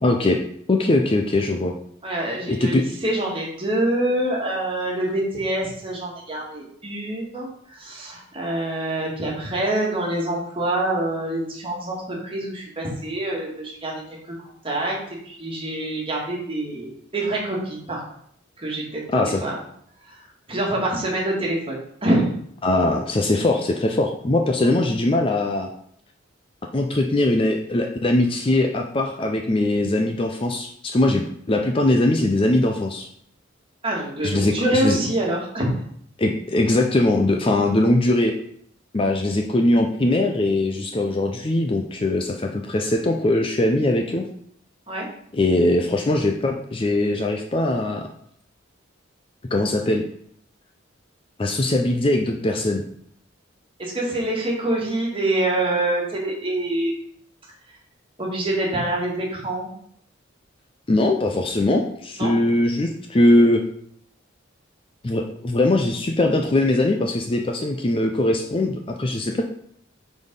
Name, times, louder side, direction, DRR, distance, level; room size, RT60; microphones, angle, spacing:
voice 1, 0.0-0.4 0.7-1.7 2.5-2.8 19.1-19.4 22.6-25.7 26.7-33.1 34.2-35.0 36.2-38.3 38.9-44.2 45.3-48.1 49.5-50.0 51.4-52.8 60.9-63.6 65.0-69.4, left 1 dB, 25° left, 3 dB, 0.5 m, -21 dB
voice 2, 2.0-14.4 14.6-18.0 18.6-19.0 19.4-19.5 20.1-20.2 20.5-21.7 22.0-22.3 24.6-24.7 33.8-35.8 44.9-45.1 53.8-56.9 58.2-59.7 62.2-62.3, right 1 dB, 25° right, -3 dB, 1.7 m, -25 dB
5.2 x 4.1 x 5.3 m, 0.66 s
head